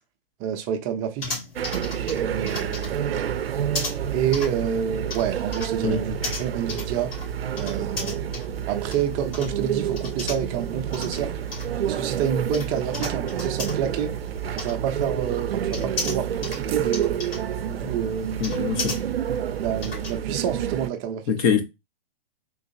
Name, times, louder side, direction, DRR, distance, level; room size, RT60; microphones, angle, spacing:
voice 1, 0.4-1.4 2.1-3.1 4.1-7.1 7.6-8.2 8.7-11.3 11.9-14.1 14.6-17.2 17.6-18.4 19.6-21.5, right 9 dB, 25° right, 0.6 m, -28 dB
sound 1, 1.2-20.1, left 3 dB, 70° left, 2.4 m, -37 dB
sound 2, 1.6-20.9, right 9 dB, 80° right, 0.5 m, -29 dB
voice 2, 18.4-19.0 21.3-21.6, left 7 dB, 40° left, 0.8 m, -23 dB
3.8 x 3.0 x 2.7 m
hypercardioid pair, 130°, 29 cm